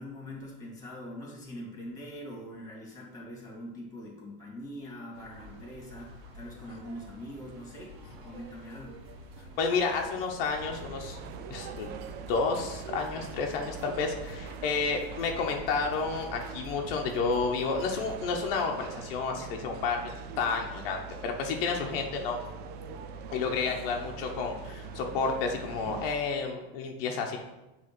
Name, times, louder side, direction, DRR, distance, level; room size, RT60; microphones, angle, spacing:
voice 1, 0.0-9.0 23.6-23.8, equal, 10° left, -2 dB, 2.1 m, -43 dB
sound 1, 5.1-18.6, equal, 70° right, 1.4 m, -49 dB
voice 2, 9.6-11.2 11.5-11.9 12.3-20.0 20.4-22.4 23.3-27.4, left 4 dB, 70° left, 2 dB, 1.0 m, -30 dB
sound 2, 10.6-26.1, right 5 dB, 35° right, 0.4 m, -42 dB
7.8 x 3.3 x 6.0 m, 1.0 s
supercardioid pair, 160°, 30 cm